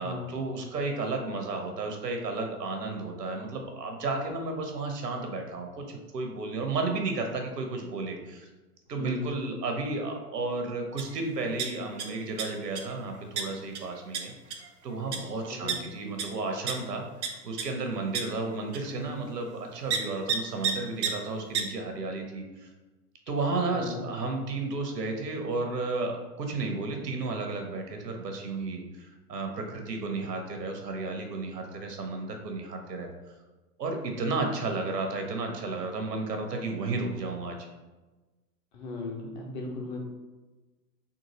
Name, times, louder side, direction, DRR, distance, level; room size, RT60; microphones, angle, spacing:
voice 1, 0.0-8.5 8.9-14.3 14.8-22.7 23.3-33.1 33.8-37.6, right 3 dB, 75° right, 3 dB, 0.8 m, -33 dB
sound 1, 11.0-11.1 11.4-12.0 12.4-12.8 13.4-13.5 13.7-13.8 14.1-14.2 14.5-14.7 15.1-15.2 15.7-15.8 16.2-16.3 16.7-16.8 17.2-17.3 17.6-17.7 18.1-18.2 18.7-18.8 19.9-20.0 20.3-20.4 20.6-20.7 21.0-21.1 21.5-21.6, right 7 dB, 45° right, 0.5 m, -28 dB
voice 2, 23.7-24.1 38.7-40.0, left 3 dB, 30° left, -1 dB, 0.6 m, -36 dB
3.8 x 2.5 x 2.8 m, 1.2 s
figure-of-eight pair, 105°, 48 cm